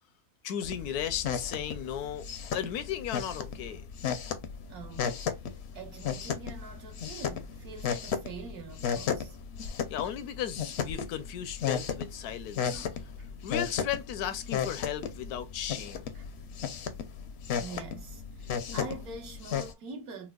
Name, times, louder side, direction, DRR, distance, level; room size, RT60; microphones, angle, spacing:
voice 1, 0.4-3.9 9.9-12.9 13.4-16.1, left 10 dB, 80° left, 1.1 m, -35 dB
sound 1, 0.6-19.7, left 7 dB, 60° left, 0.7 m, -35 dB
voice 2, 4.7-5.1 5.4-9.4 12.7-13.3 16.1-16.3 17.5-20.3, right 4 dB, 75° right, 1.5 m, -45 dB
4.5 x 2.1 x 2.3 m
omnidirectional pair, 1.6 m